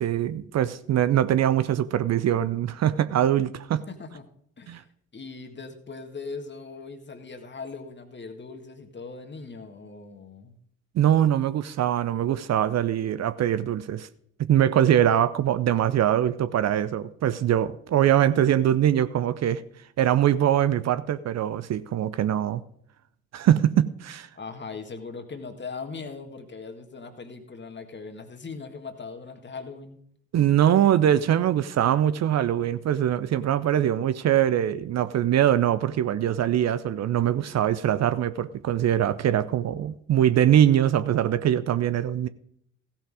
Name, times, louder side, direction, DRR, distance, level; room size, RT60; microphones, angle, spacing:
voice 1, 0.0-3.8 4.7-4.8 10.9-14.1 14.4-19.6 20.0-22.6 23.3-24.3 30.3-42.3, right 11 dB, 45° right, 0.7 m, -22 dB
voice 2, 3.9-4.3 4.6-4.9 5.1-10.6 24.4-30.0, left 4 dB, 30° left, 1.8 m, -39 dB
16.0 x 5.9 x 4.9 m
figure-of-eight pair, 45°, 38 cm